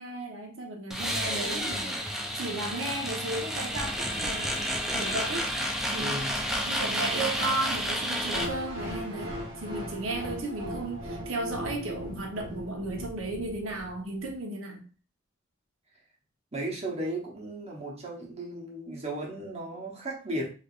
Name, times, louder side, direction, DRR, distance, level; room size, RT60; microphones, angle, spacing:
voice 1, 0.0-5.5 5.9-6.3 6.7-14.8, right 2 dB, 85° right, 1.0 m, -35 dB
sound 1, 0.9-8.5, equal, ahead, 0.5 m, -30 dB
voice 2, 6.0-6.4 16.5-20.5, right 1 dB, 30° right, 1.0 m, -35 dB
sound 2, 8.3-14.3, equal, 65° right, 1.2 m, -38 dB
3.4 x 3.3 x 2.4 m
head